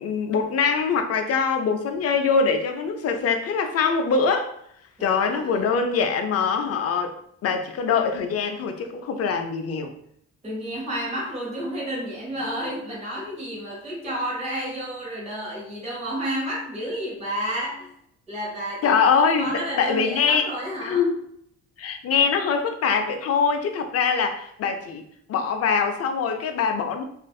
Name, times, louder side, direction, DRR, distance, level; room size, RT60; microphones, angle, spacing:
voice 1, 0.0-4.5 5.0-7.1 7.4-9.9 18.8-19.5 19.8-20.4 20.8-21.1 21.8-25.0 25.3-27.0, left 5 dB, 55° left, 6 dB, 0.5 m, -23 dB
voice 2, 5.0-5.6 10.4-17.9 18.3-21.1, equal, 20° right, -5 dB, 1.1 m, -31 dB
2.5 x 2.4 x 2.3 m, 0.70 s
cardioid pair, 90°, 30 cm